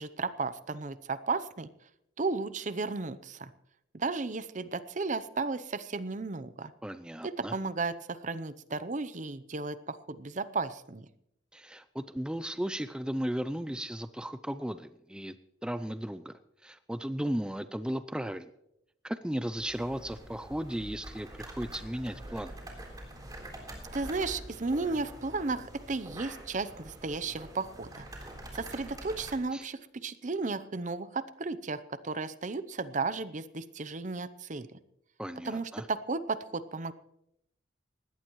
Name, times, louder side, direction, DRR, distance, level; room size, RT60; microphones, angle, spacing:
voice 1, 0.0-1.7 2.2-3.5 3.9-6.7 7.2-11.1 23.9-28.0 28.5-34.7 35.4-36.9, right 3 dB, 40° right, 14 dB, 0.7 m, -34 dB
voice 2, 6.8-7.6 11.5-15.3 15.6-16.3 16.6-18.5 19.0-22.5 29.5-29.7 35.2-35.9, equal, 5° right, 11 dB, 0.4 m, -35 dB
sound 1, 19.6-29.4, right 1 dB, 20° right, 3.7 m, -46 dB
20.0 x 16.5 x 3.1 m, 0.81 s
head